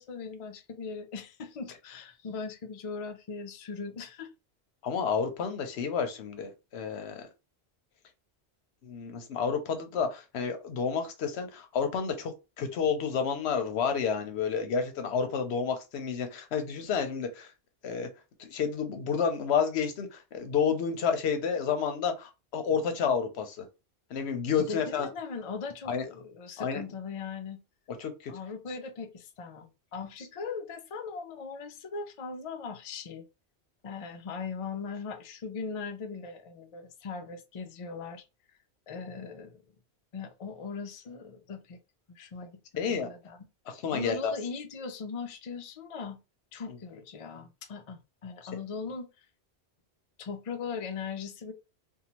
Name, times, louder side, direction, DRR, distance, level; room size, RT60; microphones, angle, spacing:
voice 1, 0.0-4.3 24.6-27.6 28.3-33.3 33.8-38.2 38.9-39.6 40.1-41.8 42.2-43.4 43.9-46.2 46.5-49.1 50.2-51.5, left 5 dB, 50° left, 0.4 m, -39 dB
voice 2, 4.8-7.3 8.8-17.5 17.8-18.1 18.4-23.7 24.1-25.1 25.9-26.0 26.6-26.8 28.0-28.3 42.8-43.1 43.7-44.3 46.7-46.8, left 6 dB, 80° left, 0.9 m, -30 dB
2.7 x 2.2 x 2.9 m
omnidirectional pair, 1.1 m